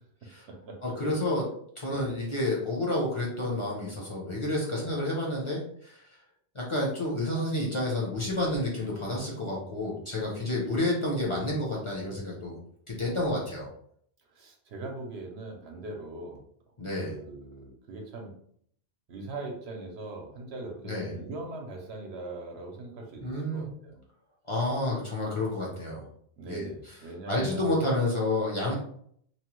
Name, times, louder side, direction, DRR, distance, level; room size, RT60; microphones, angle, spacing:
voice 1, 0.2-0.8 1.9-2.1 14.3-16.4 17.0-18.3 19.1-24.0 26.4-27.9, right 2 dB, 70° right, 1 dB, 0.9 m, -41 dB
voice 2, 0.8-1.5 1.8-6.0 6.5-12.6 12.9-13.7 16.8-17.2 20.8-21.1 23.2-23.7 24.5-26.0 26.5-26.9 27.3-28.7, left 1 dB, 35° left, -4 dB, 0.6 m, -30 dB
2.9 x 2.1 x 3.0 m, 0.64 s
omnidirectional pair, 1.1 m